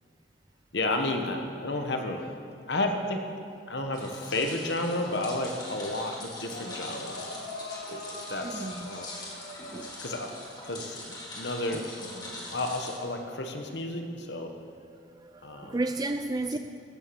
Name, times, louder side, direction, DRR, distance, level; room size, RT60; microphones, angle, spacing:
voice 1, 0.7-2.3 2.7-3.3 3.7-7.3 7.9-9.1 10.0-10.3 10.6-14.5 15.4-15.8 16.5-16.6, left 2 dB, 65° left, 4 dB, 1.2 m, -32 dB
sound 1, 3.9-13.0, left 2 dB, 25° left, 2.2 m, -43 dB
sound 2, 6.5-10.3 11.5-12.0, left 1 dB, 90° left, 1.7 m, -42 dB
voice 2, 8.4-8.9 9.6-9.9 15.2-16.6, right 2 dB, 20° right, 7 dB, 0.3 m, -32 dB
14.5 x 7.2 x 6.9 m, 2.5 s
head